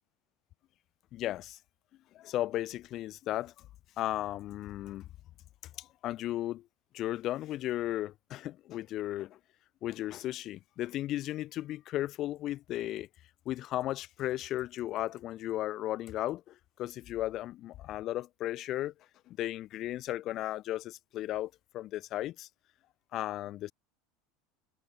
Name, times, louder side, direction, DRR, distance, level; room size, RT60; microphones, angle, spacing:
voice 1, 1.1-1.6 2.1-3.7 4.0-5.1 5.8-6.6 6.9-9.4 9.8-13.1 13.5-18.9 19.3-22.5 23.1-23.7, left 14 dB, 50° left, 2.1 m, -35 dB
supercardioid pair, 115°, 0 cm